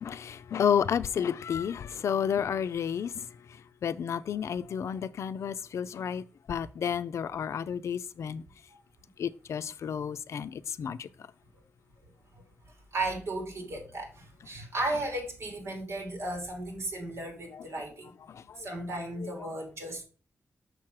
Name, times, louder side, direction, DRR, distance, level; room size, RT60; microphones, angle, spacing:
voice 1, 0.0-3.1 3.8-6.2 6.5-8.4 9.2-11.1, left 8 dB, 85° left, 0.4 m, -31 dB
voice 2, 12.9-18.1 18.6-20.0, right 2 dB, 65° right, 2.9 m, -35 dB
6.5 x 6.0 x 4.7 m
wide cardioid pair, 170°, 5 cm